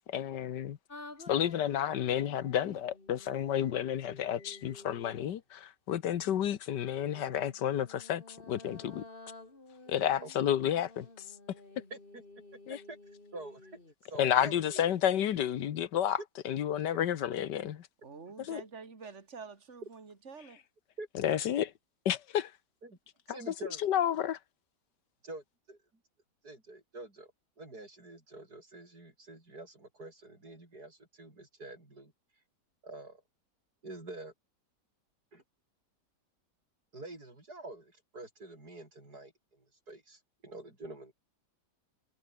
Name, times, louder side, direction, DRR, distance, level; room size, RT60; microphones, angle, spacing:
voice 1, 0.1-0.8 1.3-9.0 9.9-11.1 12.7-12.8 14.2-16.2 16.4-17.9 18.4-18.6 21.2-21.7 22.0-22.5 23.3-23.4 23.8-24.4, left 10 dB, 85° left, 1.7 m, -31 dB
sound 1, 0.9-5.4 6.9-13.9, left 2 dB, 30° left, 3.7 m, -52 dB
voice 2, 10.0-10.5 11.9-12.2 12.7-13.0 13.3-13.8 14.1-14.8 21.0-21.1 22.8-23.0 23.3-23.8 25.2-25.8 26.4-27.3 27.6-32.1 32.8-33.2 33.8-34.3 35.3-35.4 36.9-41.1, right 2 dB, 65° right, 7.1 m, -47 dB
voice 3, 18.0-20.6, right 5 dB, 40° right, 2.9 m, -47 dB
omnidirectional pair, 1.8 m